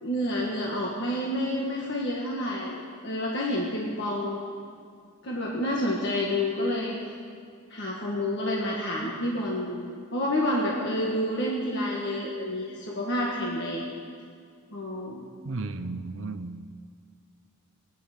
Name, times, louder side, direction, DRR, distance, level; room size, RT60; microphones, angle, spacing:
voice 1, 0.0-4.4 5.2-7.0 7.7-13.9 14.7-15.2, left 1 dB, 55° left, 1.6 m, -29 dB
voice 2, 15.4-16.7, right 3 dB, 65° right, 0.7 m, -34 dB
18.0 x 10.0 x 6.6 m
head